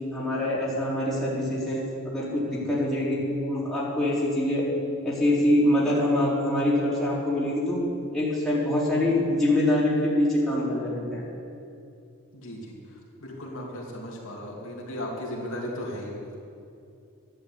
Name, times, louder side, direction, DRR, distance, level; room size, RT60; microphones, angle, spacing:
voice 1, 0.1-4.7 5.0-7.8 8.1-11.2, left 1 dB, ahead, -9 dB, 3.9 m, -24 dB
voice 2, 12.3-16.4, equal, 65° left, -3 dB, 2.9 m, -36 dB
12.5 x 11.5 x 8.4 m, 2.6 s
head